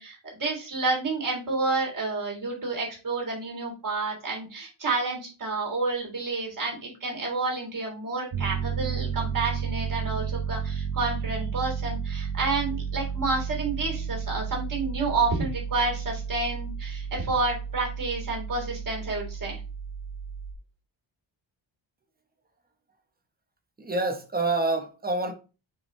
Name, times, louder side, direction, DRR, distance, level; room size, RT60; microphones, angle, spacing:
voice 1, 0.0-19.6, right 3 dB, 40° right, 3.2 m, -29 dB
Piano, 8.3-20.5, right 7 dB, 85° right, 1.5 m, -32 dB
voice 2, 23.8-25.3, right 2 dB, 20° right, 1.2 m, -27 dB
6.0 x 4.9 x 3.2 m
wide cardioid pair, 165°, 48 cm